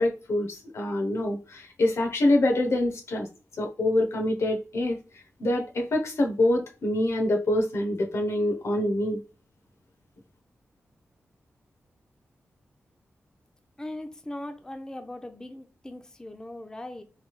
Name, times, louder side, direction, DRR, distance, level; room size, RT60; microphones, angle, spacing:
voice 1, 0.0-3.3 3.6-5.0 5.4-9.2, left 1 dB, 70° left, 0.7 m, -25 dB
voice 2, 13.8-17.0, left 1 dB, 15° left, 0.5 m, -39 dB
3.2 x 2.7 x 3.0 m
cardioid pair, 70°, 5 cm